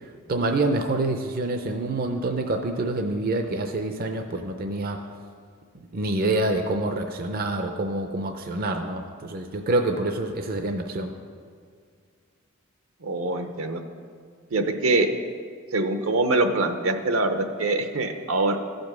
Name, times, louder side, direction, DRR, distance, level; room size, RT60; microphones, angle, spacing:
voice 1, 0.3-5.0 5.9-11.1, right 2 dB, 45° right, 5 dB, 0.6 m, -26 dB
voice 2, 13.0-13.8 14.5-15.1 15.7-18.6, right 2 dB, 75° right, 7 dB, 0.8 m, -24 dB
15.0 x 5.2 x 6.1 m, 2.1 s
head